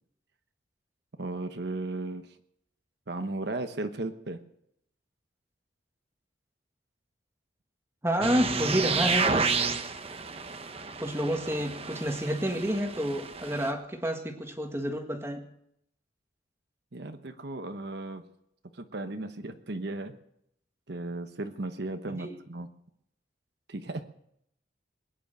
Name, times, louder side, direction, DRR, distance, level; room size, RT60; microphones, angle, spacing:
voice 1, 1.2-2.3 3.1-4.4 16.9-18.2 18.7-20.2 20.9-22.7 23.7-24.0, right 2 dB, 60° right, 8 dB, 1.1 m, -35 dB
voice 2, 8.0-9.6 11.0-15.4 22.2-22.4, equal, 15° right, 4 dB, 1.8 m, -29 dB
sound 1, 8.2-13.7, right 4 dB, 30° right, 1.0 m, -31 dB
21.5 x 10.0 x 6.7 m, 0.75 s
head